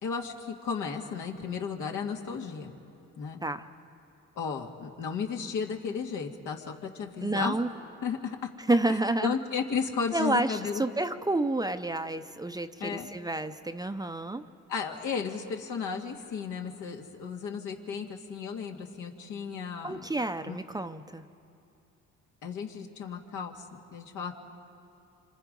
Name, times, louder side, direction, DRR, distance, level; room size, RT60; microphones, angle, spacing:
voice 1, 0.0-2.8 3.2-3.4 4.4-7.6 8.0-8.5 8.9-10.8 12.8-13.1 14.7-20.1 20.4-20.6 22.4-23.6 23.9-24.3, left 6 dB, 80° left, 1 dB, 2.2 m, -34 dB
voice 2, 7.2-7.7 8.7-9.4 10.1-14.5 19.8-21.3, right 2 dB, 15° right, 9 dB, 0.6 m, -29 dB
26.5 x 25.5 x 5.4 m, 2.8 s
cardioid pair, 90°, 30 cm